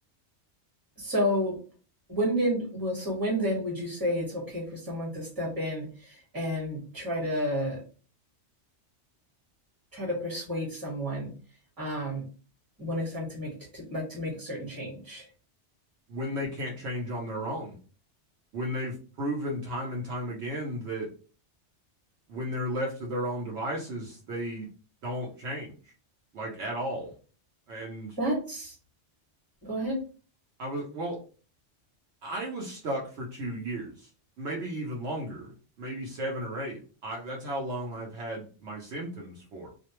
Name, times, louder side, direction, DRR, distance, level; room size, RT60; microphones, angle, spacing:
voice 1, 1.0-1.6 2.1-7.8 9.9-11.3 11.8-12.2 12.8-15.3 28.2-28.7 29.6-30.0, equal, 20° right, -2 dB, 1.1 m, -31 dB
voice 2, 16.1-17.8 18.5-21.1 22.3-24.7 25.0-25.7 26.3-27.1 27.7-28.2 30.6-31.2 32.2-34.1 34.4-35.5 35.8-39.7, equal, 70° right, -2 dB, 0.9 m, -34 dB
2.4 x 2.1 x 2.9 m, 0.38 s
omnidirectional pair, 1.2 m